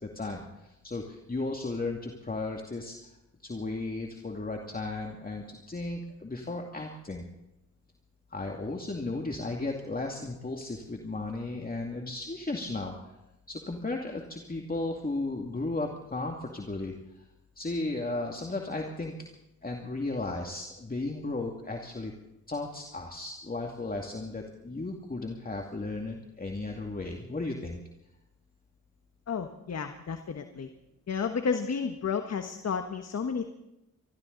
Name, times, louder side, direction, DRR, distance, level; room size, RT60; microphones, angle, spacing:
voice 1, 0.0-2.9 3.4-7.3 8.3-13.1 13.5-16.9 17.6-19.3 19.6-22.1 22.5-27.8, left 2 dB, 25° left, 1 dB, 2.4 m, -35 dB
voice 2, 29.3-30.7 31.1-33.5, left 6 dB, 45° left, 7 dB, 1.4 m, -32 dB
24.5 x 13.5 x 4.0 m, 0.89 s
supercardioid pair, 50°, 35 cm